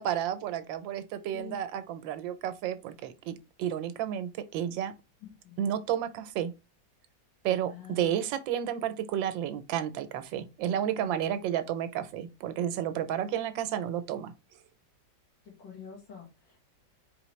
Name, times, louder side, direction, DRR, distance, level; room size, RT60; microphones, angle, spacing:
voice 1, 0.0-4.9 5.6-6.5 7.4-14.3, right 10 dB, 90° right, 1.4 m, -31 dB
voice 2, 5.2-5.6 7.7-8.2 11.0-11.3 15.4-16.6, left 7 dB, 80° left, 2.2 m, -47 dB
4.6 x 3.4 x 3.1 m
omnidirectional pair, 2.0 m